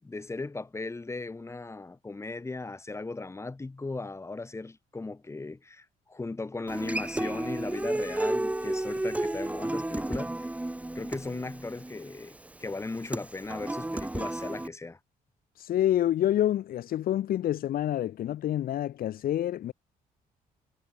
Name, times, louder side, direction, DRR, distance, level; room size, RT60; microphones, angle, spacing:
voice 1, 0.0-10.4 10.9-15.0, left 3 dB, 20° left, 6.6 m, -37 dB
Human voice / Acoustic guitar, 6.7-14.7, right 1 dB, 10° right, 2.1 m, -32 dB
voice 2, 15.6-19.7, left 12 dB, 70° left, 2.3 m, -27 dB
cardioid pair, 125°, 15 cm